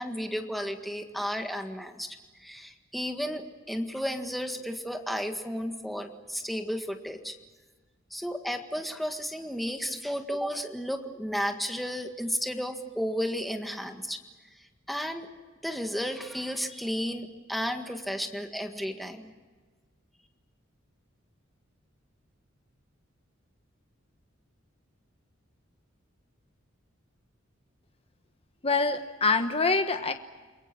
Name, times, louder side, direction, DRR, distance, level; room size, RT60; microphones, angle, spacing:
voice 1, 0.0-2.1 2.4-7.3 8.1-14.2 14.9-15.3 15.6-19.3, equal, ahead, 5 dB, 1.7 m, -33 dB
voice 2, 28.6-30.1, left 3 dB, 30° left, 8 dB, 1.2 m, -25 dB
29.5 x 22.0 x 6.1 m, 1.4 s
head